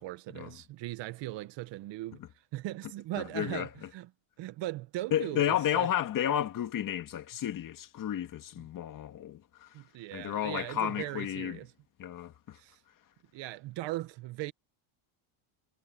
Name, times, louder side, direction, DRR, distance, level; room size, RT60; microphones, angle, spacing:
voice 1, 0.0-2.2 2.5-4.1 4.4-5.9 9.7-11.7 12.6-12.8 13.3-14.5, right 16 dB, 60° right, 1.6 m, -39 dB
voice 2, 3.1-3.7 5.1-9.7 10.1-11.6 12.0-12.6, left 11 dB, 40° left, 2.2 m, -32 dB
cardioid pair, 145°, 50 cm